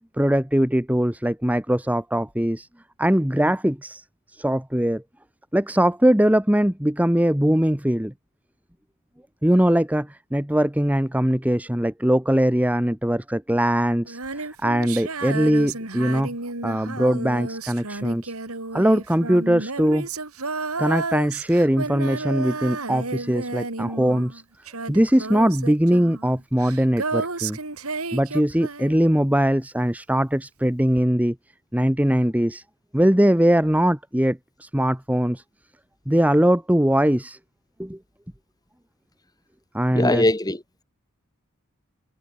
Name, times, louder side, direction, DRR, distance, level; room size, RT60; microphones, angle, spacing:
voice 1, 0.2-2.7 3.0-4.0 4.3-5.0 5.5-8.1 9.4-16.3 16.6-18.3 18.7-20.1 20.8-24.4 24.9-27.6 28.1-31.3 31.7-32.6 32.9-35.4 36.1-37.4 37.8-38.0 39.7-40.3, equal, 5° right, 1.2 m, -21 dB
Female singing, 14.1-29.4 31.0-31.1, right 3 dB, 80° right, 4.1 m, -32 dB
voice 2, 39.9-40.8, left 1 dB, 15° left, 1.9 m, -21 dB
head